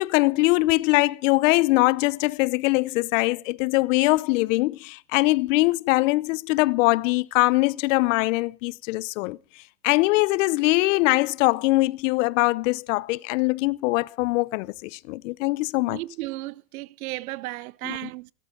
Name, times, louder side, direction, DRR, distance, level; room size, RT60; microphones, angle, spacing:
voice 1, 0.0-9.4 9.8-16.0 17.8-18.1, left 22 dB, 50° left, 0.8 m, -22 dB
voice 2, 15.9-18.3, right 19 dB, 60° right, 0.7 m, -34 dB
17.0 x 13.5 x 3.8 m
hypercardioid pair, 125°, 49 cm